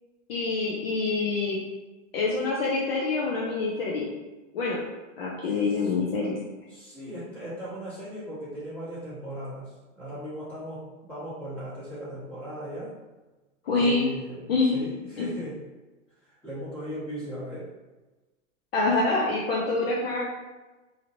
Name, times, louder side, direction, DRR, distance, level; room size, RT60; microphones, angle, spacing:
voice 1, 0.3-1.6 2.1-4.1 4.5-4.8 5.2-6.4 13.7-14.1 14.5-14.8 15.2-15.3 18.7-20.3, left 3 dB, 50° left, -3 dB, 0.5 m, -26 dB
voice 2, 6.7-12.9 13.7-14.4 14.7-15.6 16.2-17.7, equal, 5° left, -14 dB, 1.2 m, -37 dB
2.9 x 2.8 x 2.6 m, 1.2 s
supercardioid pair, 165°, 39 cm